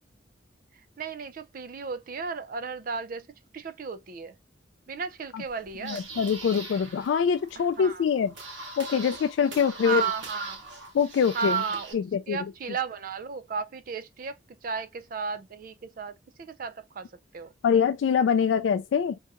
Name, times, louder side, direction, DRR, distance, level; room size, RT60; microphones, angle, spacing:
voice 1, 1.0-3.3 3.5-4.4 4.9-6.0 7.6-8.0 9.8-10.6 11.3-14.4 14.6-17.5, right 5 dB, 50° right, 0.4 m, -34 dB
sound 1, 5.4-11.9, right 2 dB, 80° right, 1.2 m, -42 dB
voice 2, 5.8-8.3 8.8-10.0 10.9-11.6 11.9-12.4 17.6-19.2, left 7 dB, 75° left, 0.3 m, -24 dB
3.5 x 2.8 x 2.5 m
head